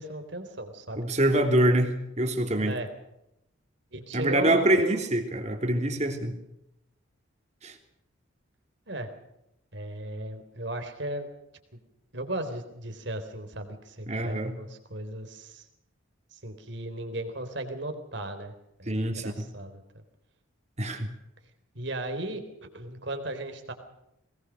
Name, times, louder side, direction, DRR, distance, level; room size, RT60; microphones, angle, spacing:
voice 1, 0.0-1.1 2.6-2.9 3.9-5.0 8.9-9.1 9.7-11.3 12.1-15.7 16.3-18.5 18.8-19.8 21.7-23.7, right 1 dB, 55° right, 7 dB, 3.9 m, -36 dB
voice 2, 1.0-2.8 4.1-6.3 7.6-7.7 14.1-14.5 18.9-19.5 20.8-21.1, right 1 dB, 35° right, 5 dB, 3.2 m, -25 dB
21.5 x 20.5 x 6.4 m, 0.83 s
head